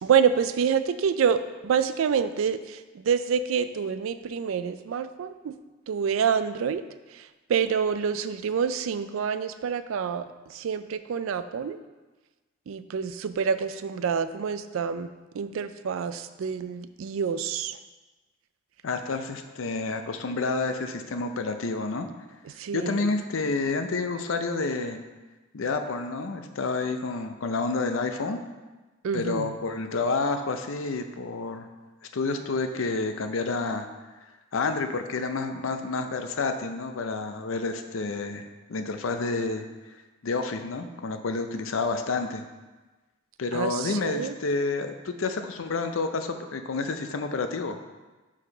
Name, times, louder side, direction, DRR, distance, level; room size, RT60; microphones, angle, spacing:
voice 1, 0.0-5.6 5.9-6.8 7.1-11.8 12.7-15.1 15.3-17.8 22.4-23.1 29.0-29.6 43.5-44.4, right 7 dB, 80° right, 12 dB, 0.3 m, -27 dB
voice 2, 18.8-22.1 22.7-25.0 25.5-28.4 29.1-31.7 32.1-33.9 34.5-39.7 40.2-42.4 43.4-47.8, left 3 dB, 75° left, 7 dB, 0.5 m, -29 dB
4.8 x 4.4 x 5.4 m, 1.2 s
head